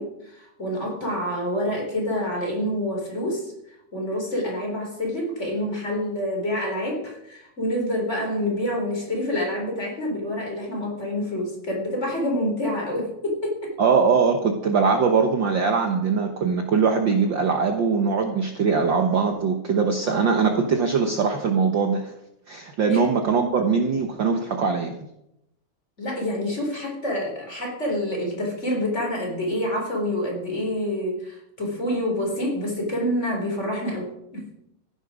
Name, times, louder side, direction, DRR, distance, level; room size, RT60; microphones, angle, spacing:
voice 1, 0.0-3.5 3.9-13.7 20.0-20.3 22.9-23.1 26.0-34.5, left 1 dB, 20° left, 0 dB, 4.1 m, -27 dB
voice 2, 13.8-22.1 22.5-25.0, right 5 dB, 65° right, 4 dB, 1.1 m, -21 dB
15.5 x 11.0 x 5.1 m, 0.81 s
omnidirectional pair, 3.7 m